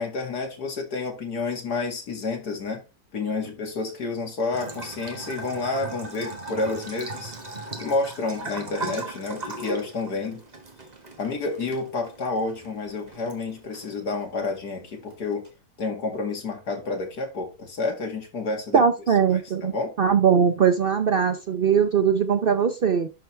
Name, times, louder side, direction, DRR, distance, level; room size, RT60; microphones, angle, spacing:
voice 1, 0.0-2.8 3.1-7.3 7.8-10.4 11.2-15.4 15.8-18.8 19.3-19.9, left 3 dB, 65° left, 2.6 m, -29 dB
Bathtub (filling or washing) / Trickle dribble, 4.5-15.5, right 2 dB, 25° right, 1.4 m, -39 dB
voice 2, 18.7-23.1, right 7 dB, 80° right, 0.5 m, -21 dB
11.5 x 4.5 x 3.3 m
omnidirectional pair, 1.8 m